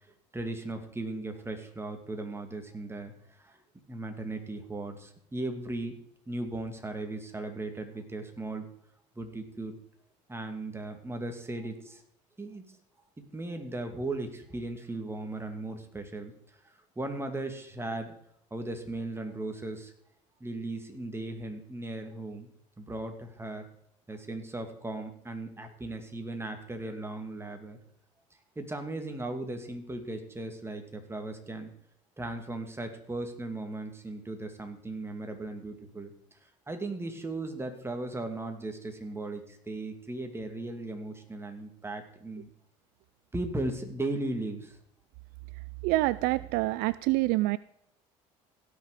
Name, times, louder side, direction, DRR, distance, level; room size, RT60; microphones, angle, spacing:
voice 1, 0.3-3.6 3.9-6.0 6.3-8.7 9.2-9.7 10.3-12.0 12.4-12.7 13.2-16.3 16.6-18.1 18.5-19.9 20.4-22.5 22.8-23.7 24.1-27.8 28.6-31.7 32.2-42.5 43.3-44.8, right 2 dB, 15° right, 5 dB, 2.6 m, -37 dB
voice 2, 45.8-47.6, right 19 dB, 70° right, 18 dB, 0.4 m, -26 dB
16.5 x 6.6 x 5.2 m, 0.70 s
hypercardioid pair, 75°, 16 cm